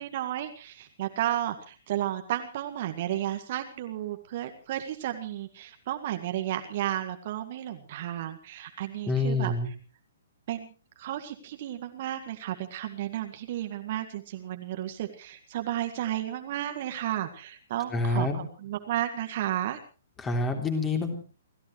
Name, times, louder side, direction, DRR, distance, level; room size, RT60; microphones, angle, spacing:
voice 1, 0.0-9.5 10.5-10.7 11.0-19.8, right 12 dB, 45° right, 6 dB, 1.9 m, -33 dB
voice 2, 9.1-9.7 17.9-18.4 20.2-21.2, left 2 dB, 15° left, 5 dB, 3.3 m, -27 dB
30.0 x 14.5 x 3.2 m, 0.37 s
figure-of-eight pair, 120°, 0 cm